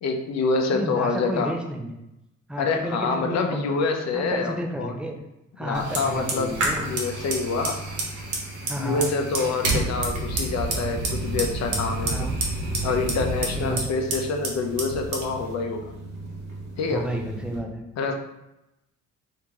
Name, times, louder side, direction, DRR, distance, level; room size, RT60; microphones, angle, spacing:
voice 1, 0.0-1.5 2.6-4.9 5.6-7.8 8.8-12.1 12.8-15.8 16.8-17.1 18.0-18.1, left 4 dB, 60° left, 4 dB, 0.6 m, -26 dB
voice 2, 0.7-2.0 2.5-3.8 4.1-5.1 5.6-6.8 8.7-9.1 12.0-12.4 13.6-13.8 16.9-17.8, right 1 dB, 5° right, 2 dB, 0.6 m, -31 dB
Fire, 5.7-17.6, right 2 dB, 75° right, 1.1 m, -30 dB
3.0 x 2.8 x 3.5 m, 0.90 s
cardioid pair, 90°, 30 cm